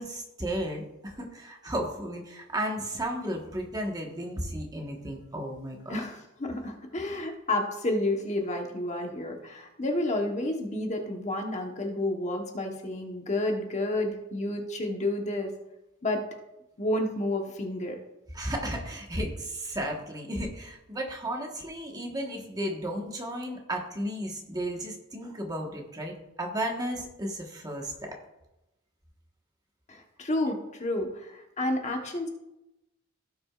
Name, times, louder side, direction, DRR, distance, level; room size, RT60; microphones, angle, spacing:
voice 1, 0.0-6.0 18.3-27.9, right 1 dB, 20° right, 0 dB, 1.3 m, -34 dB
voice 2, 5.9-15.5 16.0-16.2 16.8-18.0 29.9-32.3, left 1 dB, 35° left, 2 dB, 1.1 m, -30 dB
16.5 x 6.1 x 2.4 m, 0.92 s
head